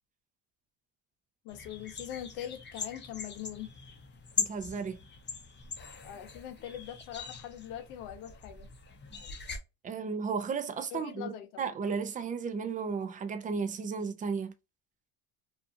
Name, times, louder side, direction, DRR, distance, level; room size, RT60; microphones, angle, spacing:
voice 1, 1.4-3.7 6.0-8.7 10.9-11.7, left 11 dB, 90° left, 0.8 m, -42 dB
sound 1, 1.5-9.6, left 5 dB, 25° left, 0.6 m, -41 dB
voice 2, 4.4-5.0 9.8-14.5, right 5 dB, 20° right, 0.3 m, -34 dB
2.6 x 2.4 x 2.5 m
supercardioid pair, 100°, 48 cm